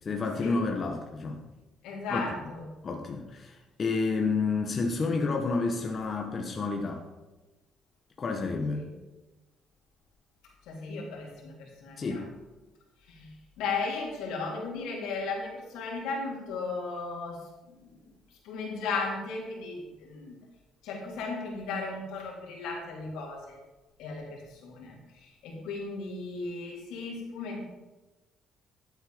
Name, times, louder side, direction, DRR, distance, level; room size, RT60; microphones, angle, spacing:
voice 1, 0.0-1.4 2.1-2.4 2.8-7.0 8.2-8.8 12.0-12.3, left 4 dB, 35° left, 2 dB, 1.2 m, -30 dB
voice 2, 1.8-2.7 8.7-8.9 10.7-12.2 13.1-17.4 17.8-17.9 18.4-20.4 20.8-23.6 24.0-27.6, left 4 dB, 90° left, -2 dB, 3.5 m, -36 dB
12.0 x 8.0 x 5.1 m, 1.1 s
cardioid pair, 135°, 0 cm